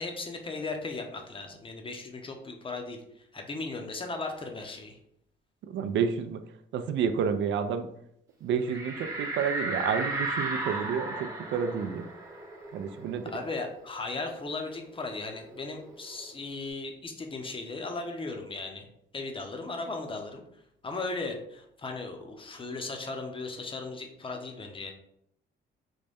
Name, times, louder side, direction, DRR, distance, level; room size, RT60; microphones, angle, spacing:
voice 1, 0.0-3.0 3.3-5.0 13.2-18.9 19.1-20.4 20.8-24.9, left 3 dB, 25° left, 4 dB, 0.7 m, -37 dB
voice 2, 5.6-6.4 6.7-7.9 8.4-12.1 12.7-13.3, right 6 dB, 70° right, 9 dB, 0.4 m, -30 dB
sound 1, 8.7-13.9 14.2-14.3 14.6-16.3, right 2 dB, 15° right, 0.8 m, -35 dB
3.9 x 2.1 x 3.5 m, 0.74 s
cardioid pair, 90°, 20 cm